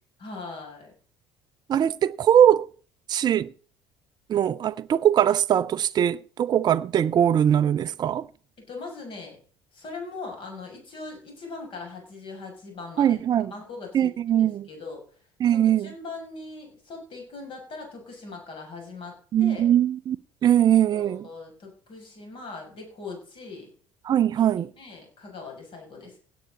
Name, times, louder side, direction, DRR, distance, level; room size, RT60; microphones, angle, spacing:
voice 1, 0.2-0.9 8.7-9.4 9.7-13.2 13.5-15.0 15.5-19.7 20.9-23.7 24.4-24.5 24.8-26.2, left 3 dB, 40° left, 6.9 m, -40 dB
voice 2, 1.7-2.7 3.1-3.5 4.3-8.3 13.0-13.5 13.9-14.7 15.4-15.9 19.3-20.2 20.4-21.3 24.0-24.7, right 10 dB, 35° right, 0.5 m, -21 dB
16.5 x 9.3 x 4.0 m
figure-of-eight pair, 60°, 13 cm